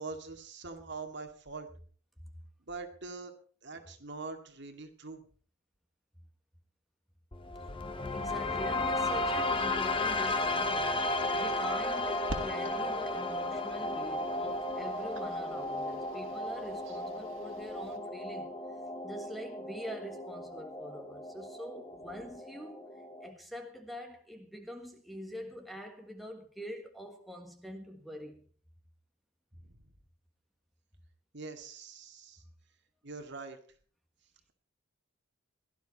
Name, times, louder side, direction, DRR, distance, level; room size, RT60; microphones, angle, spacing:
voice 1, 0.0-1.7 2.7-3.3 3.6-5.3 29.6-29.9 31.3-32.4 33.0-33.6, right 3 dB, 55° right, 2.2 m, -43 dB
sound 1, 7.3-23.3, left 2 dB, 25° left, 1.1 m, -34 dB
voice 2, 8.1-18.6 19.0-22.8 23.2-28.4, equal, ahead, 1.4 m, -45 dB
sound 2, 12.3-18.0, right 1 dB, 80° right, 2.0 m, -48 dB
16.5 x 12.5 x 4.2 m
head